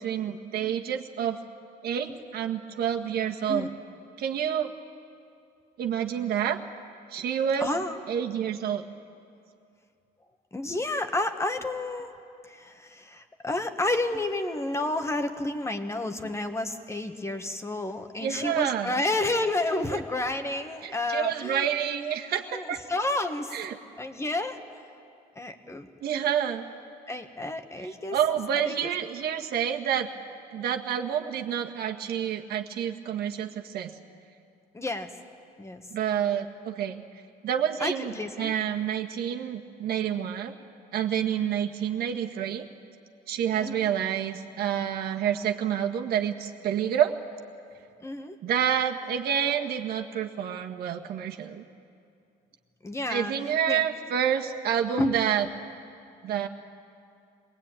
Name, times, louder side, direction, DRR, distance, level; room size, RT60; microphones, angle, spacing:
voice 1, 0.0-1.4 1.8-3.7 4.2-4.7 5.8-6.6 7.1-7.7 8.1-8.8 18.2-19.0 19.9-20.0 20.8-22.8 23.5-23.8 26.0-26.7 28.1-30.1 30.5-33.9 35.9-37.0 37.4-40.5 40.9-42.7 43.3-47.1 48.4-51.6 53.1-55.5 56.2-56.5, right 9 dB, 65° right, 3 dB, 1.7 m, -28 dB
voice 2, 7.6-8.0 10.5-12.1 12.4-21.7 22.5-23.6 24.0-24.8 25.3-25.9 27.1-28.2 28.6-28.9 34.7-35.1 35.6-35.8 37.8-38.5 43.5-43.9 48.0-48.4 52.8-53.3 53.7-53.9 55.0-55.2, left 2 dB, 15° left, 7 dB, 1.5 m, -30 dB
23.5 x 19.5 x 9.0 m, 2.5 s
cardioid pair, 110°, 17 cm